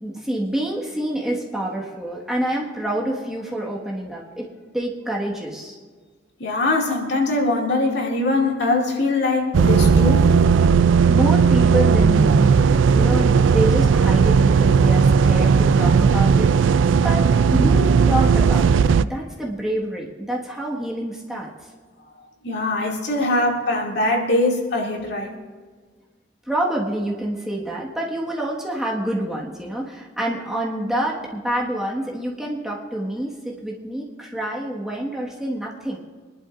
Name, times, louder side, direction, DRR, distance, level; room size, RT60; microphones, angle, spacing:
voice 1, 0.0-4.5 4.7-5.8 11.1-21.5 26.5-36.0, right 1 dB, 5° right, -4 dB, 1.5 m, -27 dB
voice 2, 6.4-10.3 22.4-25.3, left 2 dB, 65° left, -1 dB, 2.3 m, -22 dB
sound 1, 9.5-19.0, right 5 dB, 80° right, 0.4 m, -16 dB
24.0 x 11.5 x 2.5 m, 1.5 s
head